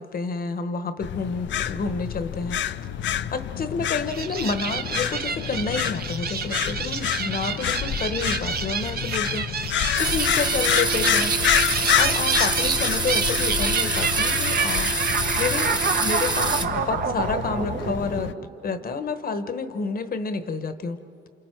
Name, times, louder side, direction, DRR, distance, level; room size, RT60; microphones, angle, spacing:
voice 1, 0.0-2.6 3.0-18.3 18.6-21.0, left 4 dB, 45° left, 10 dB, 1.1 m, -30 dB
sound 1, 1.0-18.3, left 10 dB, 65° left, 0.5 m, -28 dB
sound 2, 4.1-18.7, right 6 dB, 50° right, 0.9 m, -29 dB
sound 3, 10.0-16.6, right 3 dB, 20° right, 1.3 m, -26 dB
29.5 x 27.5 x 4.5 m, 2.7 s
cardioid pair, 125°, 21 cm